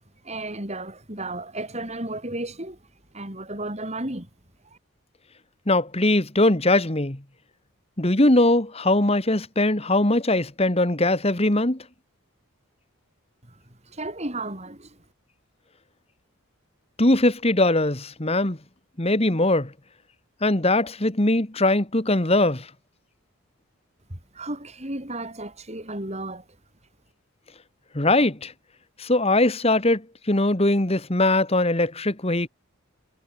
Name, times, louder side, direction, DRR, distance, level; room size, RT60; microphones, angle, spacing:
voice 1, 0.2-2.8 3.1-4.3 13.9-14.9 24.1-26.4, right 2 dB, 30° right, 4.0 m, -33 dB
voice 2, 5.7-7.2 8.0-11.8 17.0-18.6 19.0-19.7 20.4-22.6 27.9-28.5 29.0-30.0 30.3-32.5, left 2 dB, 25° left, 1.7 m, -21 dB
head